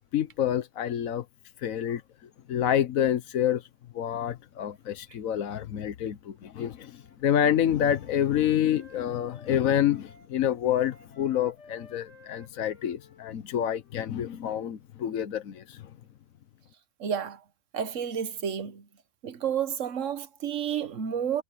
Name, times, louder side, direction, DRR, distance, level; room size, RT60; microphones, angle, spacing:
voice 1, 0.1-1.2 1.6-2.0 2.5-3.7 3.9-15.9, left 10 dB, 80° left, 1.3 m, -27 dB
Wind instrument woodwind instrument, 6.7-10.3 10.6-14.4, left 3 dB, 65° left, 5.5 m, -55 dB
voice 2, 17.0-17.4 17.7-18.8 19.2-21.4, right 8 dB, 70° right, 1.4 m, -30 dB
omnidirectional pair, 1.4 m